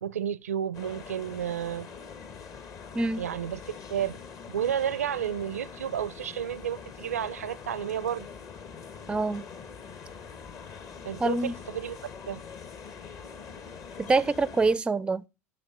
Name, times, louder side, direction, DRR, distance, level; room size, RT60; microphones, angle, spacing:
voice 1, 0.0-1.9 3.2-4.2 4.5-8.3 11.0-12.4, right 9 dB, 80° right, 0.5 m, -32 dB
sound 1, 0.7-14.8, left 6 dB, 45° left, 1.5 m, -44 dB
voice 2, 2.9-3.2 9.1-9.5 11.2-11.5 14.0-15.2, right 3 dB, 15° right, 0.5 m, -25 dB
11.5 x 7.0 x 5.7 m
hypercardioid pair, 75°, 8 cm